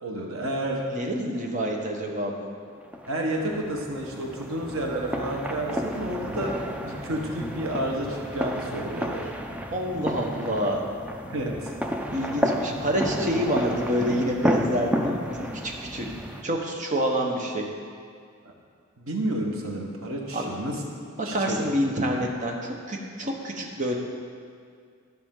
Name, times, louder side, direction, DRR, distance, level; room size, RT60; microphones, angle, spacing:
voice 1, 0.0-0.9 3.1-9.3 11.3-11.7 12.2-12.3 13.2-13.4 18.4-18.5 19.0-20.8 21.2-21.6, right 1 dB, 90° right, 0 dB, 1.3 m, -30 dB
voice 2, 0.9-2.5 9.7-10.8 12.1-16.1 16.4-17.6 20.3-20.5 21.3-24.0, equal, 40° right, 0 dB, 1.0 m, -27 dB
sound 1, 2.9-16.4, equal, 5° right, 0.4 m, -31 dB
13.0 x 5.9 x 3.8 m, 2.1 s
head